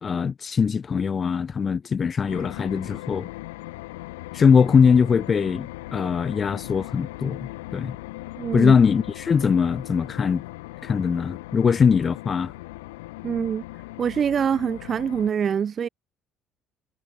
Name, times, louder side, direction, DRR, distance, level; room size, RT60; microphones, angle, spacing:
voice 1, 0.0-3.3 4.3-8.0 8.5-10.4 10.8-12.5, left 6 dB, 40° left, 0.6 m, -21 dB
sound 1, 2.3-15.3, left 20 dB, 85° left, 1.0 m, -39 dB
voice 2, 8.4-8.7 13.2-13.6 14.0-15.9, right 7 dB, 45° right, 0.4 m, -24 dB
hypercardioid pair, 60°, 0 cm